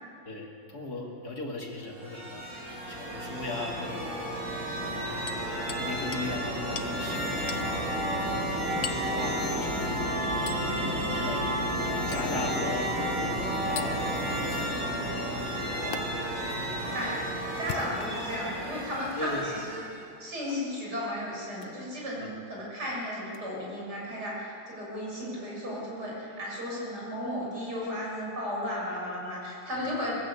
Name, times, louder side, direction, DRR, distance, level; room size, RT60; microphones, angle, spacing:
voice 1, 0.2-4.2 4.9-7.8 8.3-10.5 11.0-11.5 12.1-15.8 16.3-16.8 19.2-19.5 22.2-22.3, left 2 dB, 55° left, 0 dB, 2.8 m, -39 dB
sound 1, 1.8-20.0, equal, 85° right, 8.3 m, -32 dB
Hammer, 5.3-5.9 6.1-6.3 6.8-6.9 7.5-7.7 8.8-9.1 10.5-10.7 12.1-12.3 13.8-13.9 15.9-16.0 17.5-18.3 19.1-19.2 20.5-20.7 21.6-21.8 23.3-23.4, left 8 dB, 75° left, 1.7 m, -39 dB
voice 2, 17.6-30.1, left 1 dB, 60° right, -5 dB, 7.7 m, -34 dB
21.5 x 15.0 x 8.4 m, 2.5 s
omnidirectional pair, 2.0 m